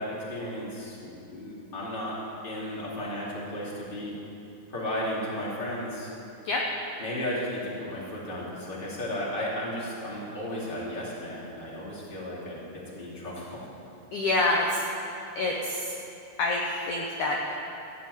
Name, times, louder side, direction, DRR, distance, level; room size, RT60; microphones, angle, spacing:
voice 1, 0.0-4.2 4.7-6.1 7.0-13.6, left 1 dB, 15° left, -6 dB, 2.1 m, -34 dB
voice 2, 14.1-14.8 15.4-15.9 16.4-17.6, left 2 dB, 70° left, -1 dB, 2.0 m, -27 dB
15.5 x 6.0 x 9.2 m, 2.9 s
omnidirectional pair, 4.4 m